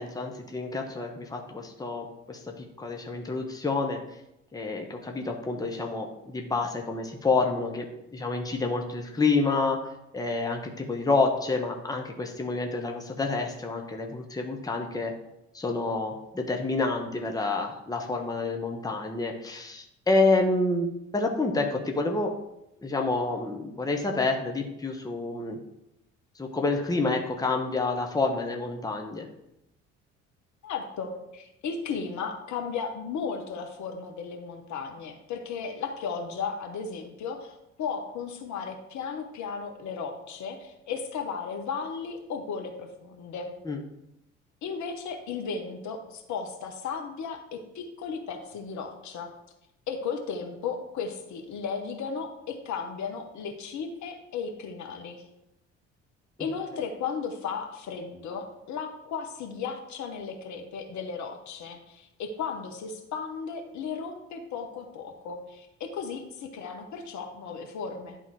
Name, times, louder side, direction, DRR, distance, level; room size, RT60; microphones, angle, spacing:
voice 1, 0.0-4.0 4.5-15.1 15.5-22.3 22.8-25.6 26.4-29.3 43.6-43.8 56.4-56.5, left 3 dB, 10° left, 2 dB, 1.1 m, -28 dB
voice 2, 30.6-43.5 44.6-49.3 49.9-55.2 56.4-68.2, left 5 dB, 50° left, 4 dB, 1.2 m, -35 dB
11.0 x 3.7 x 4.8 m, 0.85 s
figure-of-eight pair, 50°, 38 cm